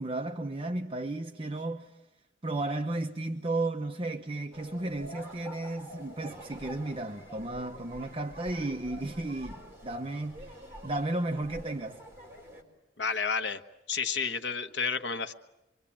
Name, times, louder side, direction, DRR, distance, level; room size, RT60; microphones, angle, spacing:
voice 1, 0.0-2.0 2.4-12.0, right 2 dB, 30° right, 1.0 m, -34 dB
sound 1, 4.5-12.6, equal, 15° right, 4.4 m, -47 dB
voice 2, 13.0-13.6 13.9-15.3, left 5 dB, 75° left, 1.3 m, -31 dB
26.5 x 24.0 x 8.7 m
head